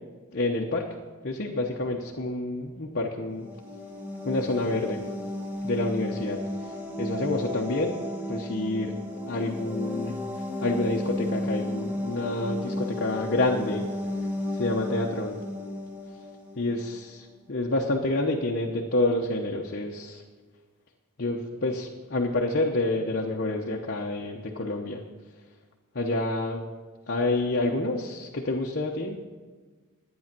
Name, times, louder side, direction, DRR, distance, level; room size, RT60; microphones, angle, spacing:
voice 1, 0.3-0.9 1.2-3.5 4.2-5.0 5.6-6.7 7.0-8.0 8.3-8.9 9.2-10.2 10.6-13.9 14.5-15.4 16.6-20.2 21.2-25.0 25.9-26.6 27.1-29.2, left 2 dB, 50° left, -1 dB, 0.9 m, -28 dB
sound 1, 3.3-16.9, left 1 dB, 10° right, 1.4 m, -33 dB
11.5 x 9.3 x 6.0 m, 1.4 s
head